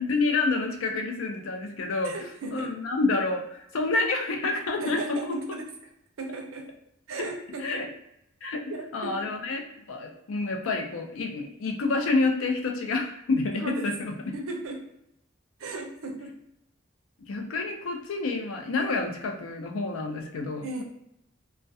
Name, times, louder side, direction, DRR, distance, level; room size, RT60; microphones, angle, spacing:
voice 1, 0.0-2.2 2.5-5.0 7.2-7.3 7.6-7.9 8.4-8.6 8.9-9.6 9.9-14.1 17.3-20.8, left 3 dB, 85° left, 3 dB, 0.5 m, -28 dB
voice 2, 2.0-2.7 4.8-5.7 6.2-6.7 7.1-7.9 8.7-9.3 13.6-14.0 14.3-14.9 15.6-16.4 20.6-20.8, right 2 dB, 85° right, 3 dB, 0.5 m, -36 dB
2.3 x 2.1 x 2.6 m, 0.78 s
head